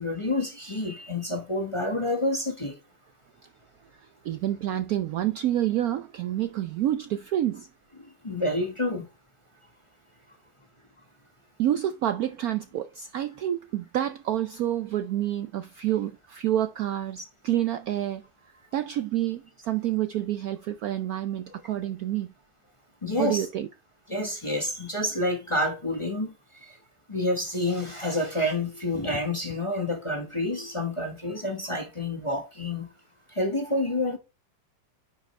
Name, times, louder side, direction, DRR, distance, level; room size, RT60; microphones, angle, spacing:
voice 1, 0.0-2.8 8.0-9.1 23.0-23.5 24.1-26.3 26.6-26.8 27.1-32.9 33.3-34.2, left 1 dB, 20° left, 1.1 m, -28 dB
voice 2, 4.2-7.7 11.6-18.2 18.7-22.3 23.2-23.7, right 12 dB, 70° right, 0.9 m, -28 dB
9.9 x 5.1 x 3.2 m
omnidirectional pair, 2.0 m